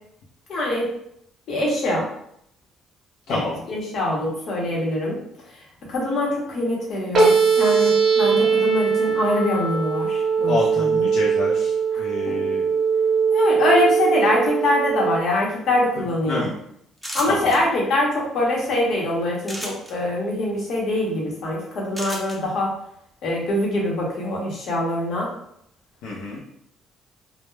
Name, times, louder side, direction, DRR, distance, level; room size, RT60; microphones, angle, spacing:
voice 1, 0.5-0.9 1.5-2.0 3.3-5.2 5.9-11.1 11.9-12.0 12.3-12.7 13.3-16.5 17.1-22.7 23.2-25.3, left 1 dB, 60° left, -2 dB, 0.8 m, -24 dB
sound 1, 7.1-15.2, right 5 dB, 50° right, 0.6 m, -20 dB
voice 2, 10.5-12.7 16.3-16.5 17.3-17.5 26.0-26.4, left 2 dB, 85° left, -5 dB, 0.5 m, -28 dB
sound 2, 17.0-17.6 19.4-19.9 21.9-22.4, equal, ahead, 0.5 m, -32 dB
2.2 x 2.1 x 3.1 m, 0.72 s
cardioid pair, 115°, 0 cm